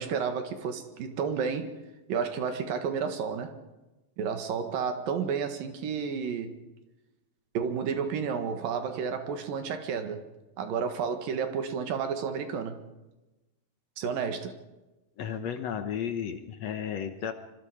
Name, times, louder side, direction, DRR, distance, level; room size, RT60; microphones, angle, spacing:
voice 1, 0.0-1.7 2.1-3.5 4.2-6.5 7.5-10.2 10.6-12.8 14.0-14.5, right 6 dB, 70° right, 7 dB, 3.2 m, -31 dB
voice 2, 15.2-17.3, left 8 dB, 70° left, 8 dB, 1.6 m, -33 dB
25.5 x 25.5 x 5.0 m, 1.1 s
omnidirectional pair, 4.3 m